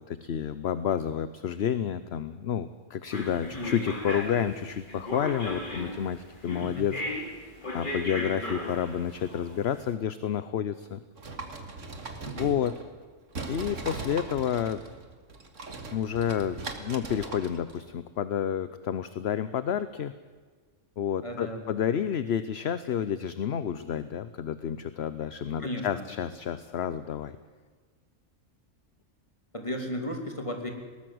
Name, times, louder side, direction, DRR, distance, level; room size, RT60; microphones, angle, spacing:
voice 1, 0.0-7.2 7.7-11.0 12.4-12.8 13.5-14.8 15.9-20.1 21.0-27.4, left 8 dB, 60° left, 13 dB, 1.0 m, -30 dB
sound 1, 3.1-9.8, left 1 dB, 40° left, 3.0 m, -36 dB
sound 2, 11.2-13.0 13.3-17.9, right 3 dB, 75° right, 2.3 m, -40 dB
voice 2, 12.3-12.6 21.2-21.8 25.6-26.1 29.5-30.7, left 1 dB, 25° left, 3 dB, 3.1 m, -35 dB
20.5 x 18.5 x 7.8 m, 1.5 s
omnidirectional pair, 1.3 m